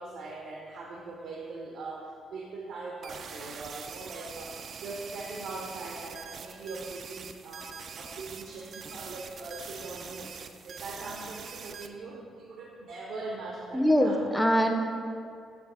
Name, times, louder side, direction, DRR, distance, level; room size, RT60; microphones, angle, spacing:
voice 1, 0.0-10.3 10.6-14.2, right 3 dB, 75° right, -2 dB, 0.7 m, -41 dB
sound 1, 3.0-11.9, right 6 dB, 55° right, 0.4 m, -44 dB
voice 2, 13.7-14.7, equal, 5° left, 4 dB, 0.6 m, -23 dB
6.0 x 3.4 x 5.4 m, 2.4 s
cardioid pair, 90°, 0 cm